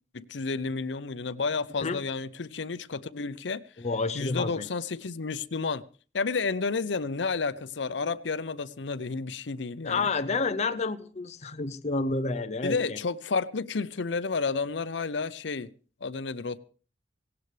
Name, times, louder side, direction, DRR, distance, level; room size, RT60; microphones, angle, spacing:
voice 1, 0.1-3.6 4.2-5.8 6.1-10.1 12.6-15.7 16.0-16.6, left 4 dB, 75° left, 0.7 m, -31 dB
voice 2, 3.8-4.7 9.8-13.0, left 3 dB, 40° left, 0.7 m, -29 dB
18.0 x 17.5 x 3.3 m
head